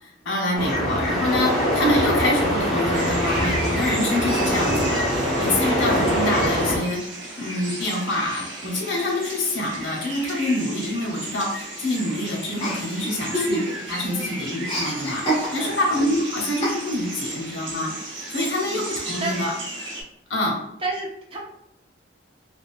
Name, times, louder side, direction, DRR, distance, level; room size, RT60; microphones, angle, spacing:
voice 1, 0.0-7.0 7.4-15.2 15.5-17.9 18.3-19.5 20.3-20.6, left 1 dB, 80° left, -1 dB, 0.8 m, -26 dB
sound 1, 0.6-6.8, equal, ahead, 0.9 m, -23 dB
sound 2, 2.9-20.0, right 2 dB, 80° right, 0.8 m, -35 dB
Chuckle chortle, 12.6-14.0 14.2-15.9 16.6-17.2, right 1 dB, 30° left, 1.2 m, -27 dB
voice 2, 14.1-14.4 15.6-15.8 18.7-18.8 19.0-19.3 20.8-21.4, right 3 dB, 30° right, -2 dB, 0.5 m, -31 dB
3.4 x 2.0 x 2.4 m, 0.79 s
head